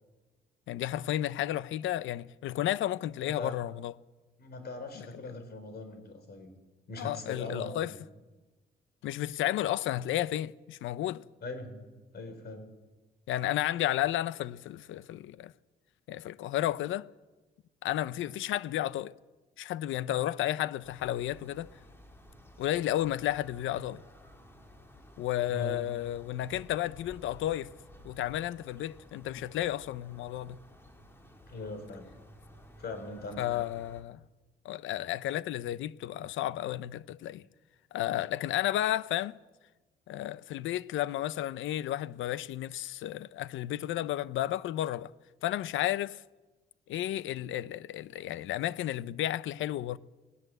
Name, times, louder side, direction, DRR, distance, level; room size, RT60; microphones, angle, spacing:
voice 1, 0.7-3.9 7.0-7.9 9.0-11.2 13.3-15.5 16.1-17.1 17.8-19.1 19.6-21.7 22.6-24.0 25.2-27.7 28.0-30.6 33.4-34.2 34.6-37.4 37.9-39.4 40.1-45.1 45.4-46.2 46.9-50.0, left 13 dB, 80° left, 0.7 m, -32 dB
voice 2, 4.4-6.5 6.9-8.0 11.4-11.8 12.1-12.6 25.5-25.8 31.5-32.1 32.8-33.7, left 2 dB, 55° left, 4.8 m, -40 dB
sound 1, 20.8-34.0, left 1 dB, 10° left, 3.2 m, -54 dB
19.5 x 19.0 x 7.9 m
cardioid pair, 90°, 20 cm